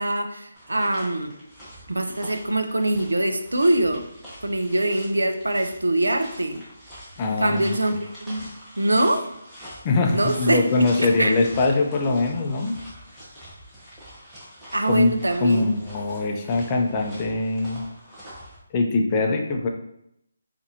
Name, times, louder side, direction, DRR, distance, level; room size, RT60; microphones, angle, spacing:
voice 1, 0.0-1.3 1.9-4.1 4.4-6.6 7.4-7.9 8.3-8.5 8.8-9.3 10.1-10.6 11.0-11.3 14.7-15.7, right 1 dB, 90° right, 7 dB, 0.4 m, -23 dB
sound 1, 0.5-18.6, equal, 5° right, 1.0 m, -44 dB
voice 2, 7.2-7.8 9.8-12.8 14.8-15.1 15.4-17.8 18.7-19.7, left 3 dB, 25° left, 2 dB, 0.4 m, -22 dB
3.9 x 2.5 x 2.7 m, 0.77 s
figure-of-eight pair, 155°, 0 cm